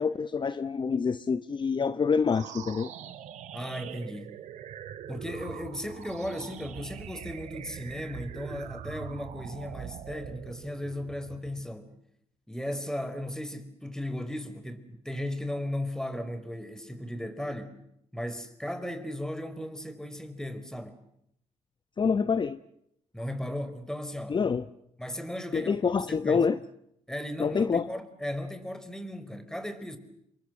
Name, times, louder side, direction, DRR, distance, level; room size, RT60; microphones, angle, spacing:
voice 1, 0.0-2.9 22.0-22.6 24.3-24.7 25.5-26.6 27.4-27.9, left 5 dB, 40° left, 0.9 m, -26 dB
sound 1, 2.2-11.7, right 9 dB, 80° right, 2.1 m, -43 dB
voice 2, 3.5-4.3 5.1-11.9 12.5-17.8 18.1-21.0 23.1-24.4 25.0-25.8 26.2-26.4 27.1-30.0, left 1 dB, 5° left, 4.4 m, -36 dB
28.0 x 23.0 x 7.8 m
cardioid pair, 70°, 12 cm